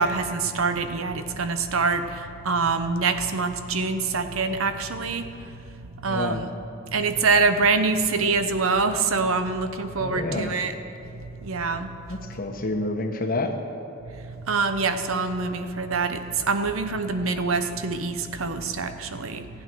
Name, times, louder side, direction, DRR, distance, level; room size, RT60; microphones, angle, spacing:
voice 1, 0.0-6.5 6.9-12.5 14.0-19.6, right 4 dB, 75° right, 9 dB, 0.8 m, -25 dB
voice 2, 6.1-6.4 10.0-10.5 12.1-13.5, left 2 dB, 45° left, 4 dB, 1.2 m, -28 dB
15.5 x 8.9 x 6.3 m, 2.7 s
head